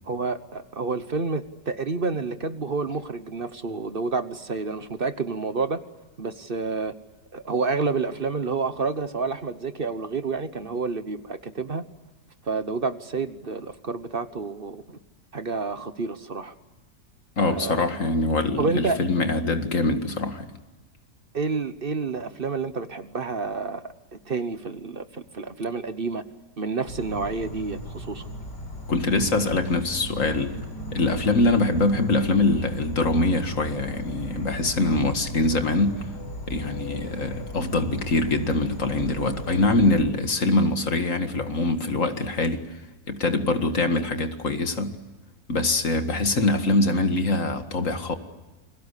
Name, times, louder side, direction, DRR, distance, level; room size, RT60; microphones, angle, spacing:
voice 1, 0.0-5.8 6.2-6.9 7.3-11.8 12.4-15.0 15.3-16.5 17.5-17.9 18.6-19.1 21.3-23.8 24.3-26.2 26.6-28.3, right 4 dB, 40° right, 1.1 m, -29 dB
voice 2, 17.4-20.5 28.9-30.6 30.9-36.1 36.5-42.7 43.1-45.0 45.5-48.1, left 2 dB, 50° left, 2.2 m, -23 dB
Insect / Frog, 26.8-40.0, right 1 dB, 85° left, 4.6 m, -37 dB
29.5 x 22.0 x 8.3 m
omnidirectional pair, 1.7 m